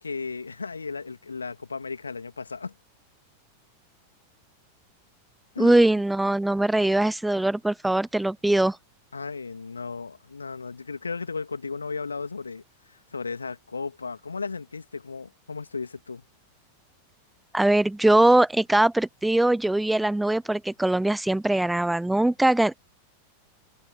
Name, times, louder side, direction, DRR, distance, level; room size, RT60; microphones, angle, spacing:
voice 1, 0.0-2.7 5.5-5.9 9.1-12.6 13.1-16.2, left 4 dB, 75° left, 2.7 m, -35 dB
voice 2, 5.6-8.8 17.5-22.8, right 1 dB, 5° right, 0.4 m, -21 dB
figure-of-eight pair, 90°, 0 cm